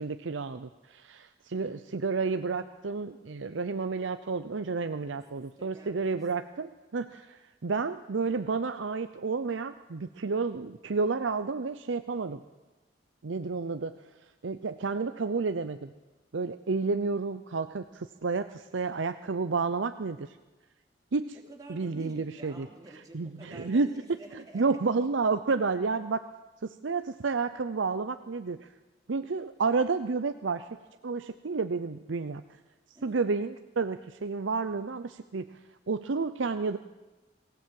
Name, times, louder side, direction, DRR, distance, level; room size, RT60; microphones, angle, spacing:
voice 1, 0.0-12.4 13.2-14.0 14.4-15.9 16.3-20.4 21.1-21.4 21.7-22.7 23.1-23.9 24.5-26.2 26.6-28.7 29.1-30.7 31.0-32.4 33.0-35.5 35.9-36.8, right 4 dB, 85° right, 10 dB, 0.6 m, -30 dB
voice 2, 5.1-6.5 21.5-24.6 32.9-33.2, right 1 dB, 20° right, 0 dB, 3.2 m, -49 dB
22.5 x 16.5 x 7.7 m, 1.2 s
head